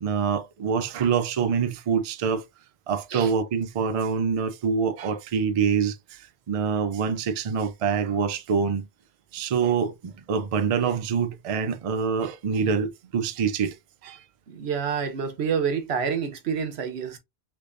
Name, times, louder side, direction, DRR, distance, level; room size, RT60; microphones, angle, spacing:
voice 1, 0.0-2.4 2.9-8.9 9.3-13.8 14.0-14.2, right 6 dB, 50° right, 0.4 m, -25 dB
voice 2, 14.5-17.2, right 6 dB, 90° right, 1.0 m, -28 dB
3.4 x 3.3 x 2.4 m
omnidirectional pair, 1.1 m